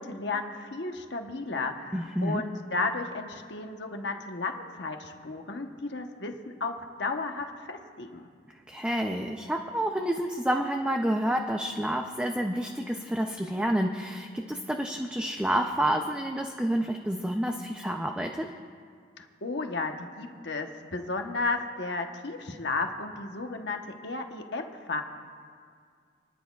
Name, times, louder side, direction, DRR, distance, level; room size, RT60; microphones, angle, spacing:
voice 1, 0.0-6.3 6.6-8.2 19.2-25.0, left 3 dB, 70° left, 4 dB, 1.1 m, -33 dB
voice 2, 1.9-2.4 8.7-18.5, right 1 dB, 5° right, 3 dB, 0.5 m, -29 dB
30.0 x 10.5 x 2.4 m, 2.1 s
head